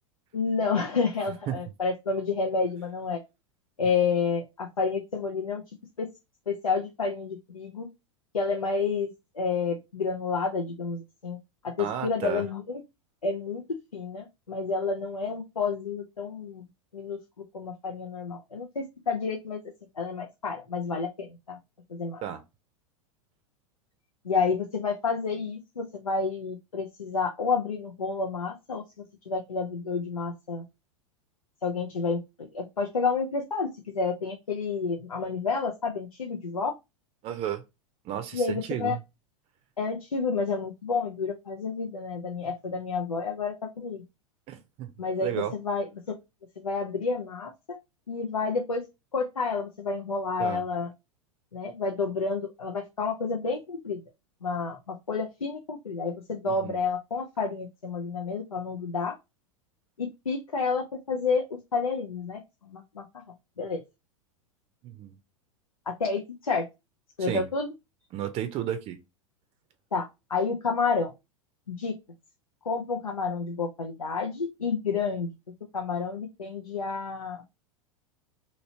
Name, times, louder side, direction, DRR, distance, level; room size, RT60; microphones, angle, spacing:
voice 1, 0.3-3.2 3.8-5.6 6.0-6.1 6.5-7.9 8.3-9.1 9.4-11.4 11.6-12.8 13.2-13.6 13.9-16.6 16.9-17.2 17.5-19.6 20.0-21.6 21.9-22.2 24.2-28.8 29.3-30.6 31.6-36.7 38.3-39.0 39.8-44.0 45.0-46.2 46.6-47.8 48.1-48.8 49.1-50.9 51.5-54.0 54.4-59.2 60.0-63.0 63.6-63.8 65.9-66.7 67.2-67.7 69.9-71.1 71.7-71.9 72.6-75.3 75.7-77.4, left 4 dB, 85° left, 0.6 m, -30 dB
voice 2, 11.8-12.4 22.2-22.4 37.2-37.6 38.0-39.0 44.5-44.9 45.2-45.5 50.4-50.6 56.5-56.8 64.8-65.2 67.2-67.5 68.1-69.0, right 11 dB, 35° right, 0.6 m, -33 dB
2.9 x 2.9 x 2.7 m
figure-of-eight pair, 90°, 18 cm